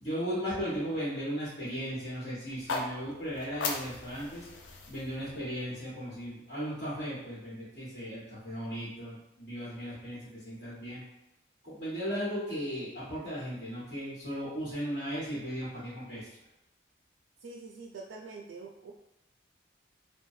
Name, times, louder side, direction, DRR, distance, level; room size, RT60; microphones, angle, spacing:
voice 1, 0.0-4.5 4.9-11.0 11.6-16.3, equal, 45° left, -11 dB, 1.3 m, -36 dB
sound 1, 2.5-6.6, left 3 dB, 80° left, 0.4 m, -39 dB
voice 2, 17.4-18.9, right 3 dB, 90° right, 1 dB, 0.3 m, -44 dB
3.0 x 2.2 x 2.6 m, 0.90 s
head